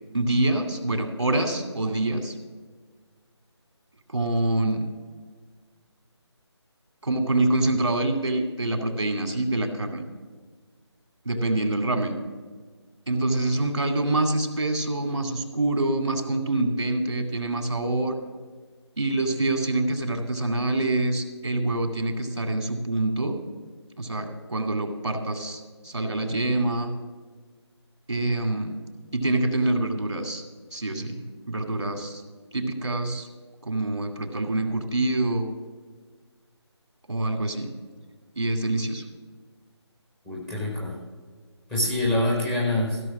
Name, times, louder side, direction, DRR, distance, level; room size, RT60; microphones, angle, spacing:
voice 1, 0.1-2.3 4.1-4.9 7.0-10.1 11.3-12.1 13.1-18.2 19.0-23.4 24.0-26.9 28.1-28.8 29.1-30.4 30.7-32.2 32.5-33.3 33.7-35.5 37.1-37.7 38.4-39.0, right 2 dB, 75° right, 4 dB, 2.4 m, -26 dB
voice 2, 40.3-41.0 41.7-43.0, left 1 dB, ahead, -5 dB, 0.4 m, -25 dB
15.5 x 6.3 x 6.1 m, 1.5 s
figure-of-eight pair, 160°, 15 cm